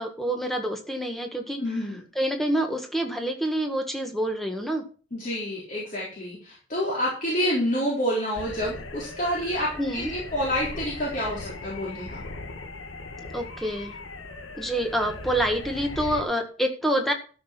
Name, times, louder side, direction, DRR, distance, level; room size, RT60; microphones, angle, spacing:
voice 1, 0.0-1.6 2.1-4.8 9.8-10.1 13.3-14.0 14.5-17.1, right 1 dB, ahead, 4 dB, 1.6 m, -27 dB
voice 2, 1.6-2.0 5.1-12.2, equal, 40° left, -5 dB, 3.9 m, -28 dB
sound 1, 8.3-16.2, left 3 dB, 85° left, 1.7 m, -39 dB
13.5 x 6.3 x 5.9 m, 0.38 s
head